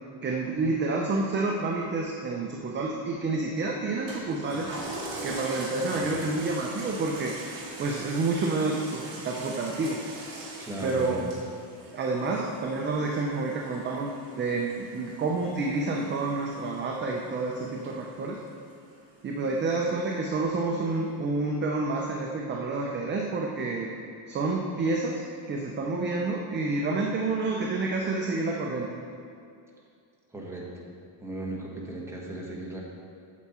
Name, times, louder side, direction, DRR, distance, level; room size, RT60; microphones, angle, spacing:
voice 1, 0.2-4.7 5.2-7.4 7.8-10.0 10.8-11.3 11.9-18.4 19.2-23.9 24.3-25.2 25.5-28.9, right 3 dB, 25° right, 0 dB, 0.5 m, -29 dB
Toilet flush, 4.1-18.9 19.4-19.5, right 2 dB, 45° right, 2.1 m, -42 dB
voice 2, 5.9-6.3 10.6-11.2 30.3-30.9 31.2-32.9, right 2 dB, 5° right, -3 dB, 1.2 m, -37 dB
8.4 x 7.1 x 4.3 m, 2.5 s
cardioid pair, 155°, 48 cm